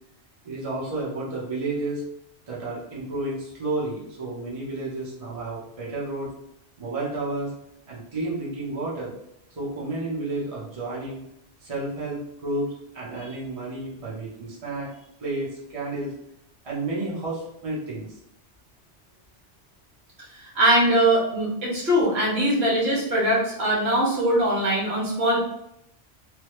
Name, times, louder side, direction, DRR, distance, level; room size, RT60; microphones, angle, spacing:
voice 1, 0.4-2.0 2.5-6.3 6.8-7.5 7.9-9.1 9.6-11.2 11.6-12.7 12.9-14.9 15.2-16.1 16.6-18.1, right 2 dB, 30° right, -6 dB, 0.9 m, -31 dB
voice 2, 20.5-25.4, right 1 dB, 60° right, -5 dB, 1.2 m, -21 dB
3.4 x 2.2 x 3.1 m, 0.79 s
omnidirectional pair, 1.2 m